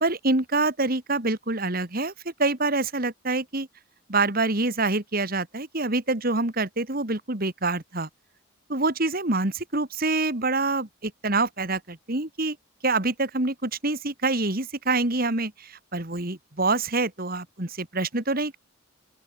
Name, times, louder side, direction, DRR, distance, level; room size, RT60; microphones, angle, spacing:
voice 1, 0.0-3.7 4.1-8.1 8.7-12.6 12.8-18.6, right 3 dB, 45° right, 2.2 m, -26 dB
open air
head